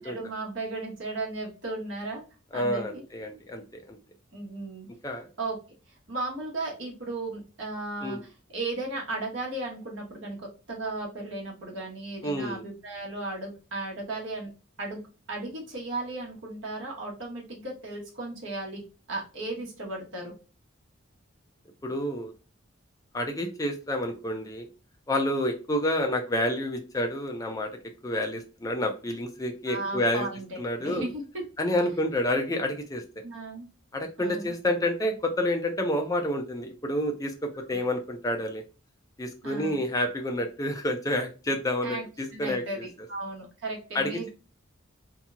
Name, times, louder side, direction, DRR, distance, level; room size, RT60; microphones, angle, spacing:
voice 1, 0.0-2.2 2.5-3.0 4.3-4.9 5.4-5.6 6.1-14.5 14.8-15.0 15.3-18.8 19.1-20.3 29.7-31.4 33.2-33.6 34.2-34.5 37.5-37.8 39.4-39.8 41.8-42.0 42.3-44.3, right 2 dB, 65° right, -2 dB, 1.2 m, -35 dB
voice 2, 2.5-4.0 5.0-5.3 8.0-8.2 12.2-12.6 21.8-22.3 23.1-24.7 25.1-27.7 28.0-30.3 30.6-31.0 31.6-33.0 33.9-38.6 39.2-42.9 43.9-44.3, left 1 dB, 15° left, 4 dB, 0.4 m, -29 dB
2.9 x 2.7 x 2.3 m, 0.34 s
head